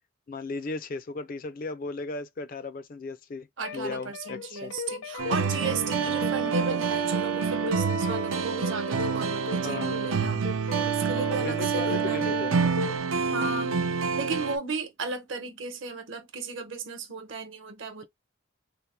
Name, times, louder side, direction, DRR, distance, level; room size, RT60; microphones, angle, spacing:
voice 1, 0.3-3.5 3.7-4.7 6.0-6.1 9.6-10.0 11.4-12.6 13.3-13.8, left 3 dB, 45° left, 0.4 m, -36 dB
sound 1, 3.6-10.9 11.2-13.0, left 3 dB, 85° left, 0.6 m, -38 dB
voice 2, 3.6-10.5 10.9-12.2 13.3-13.7 14.2-18.1, right 4 dB, 65° right, 0.9 m, -35 dB
sound 2, 5.2-14.6, right 6 dB, 85° right, 0.5 m, -27 dB
3.4 x 2.0 x 4.2 m
head